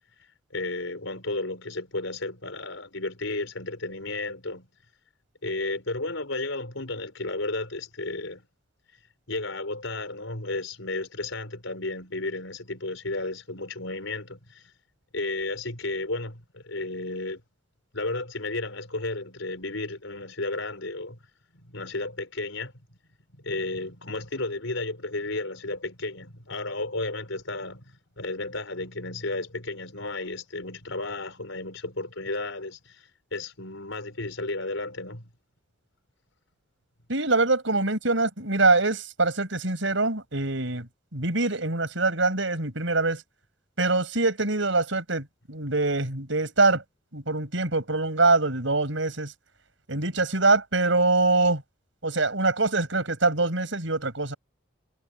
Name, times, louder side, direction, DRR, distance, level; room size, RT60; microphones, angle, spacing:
voice 1, 0.5-4.7 5.4-8.4 9.3-14.6 15.1-17.4 17.9-21.2 21.5-23.0 23.3-33.0 33.3-35.3, left 2 dB, 80° left, 4.8 m, -33 dB
voice 2, 37.1-43.2 43.8-46.8 47.1-49.3 49.9-51.6 52.0-54.3, right 3 dB, 70° right, 5.4 m, -24 dB
head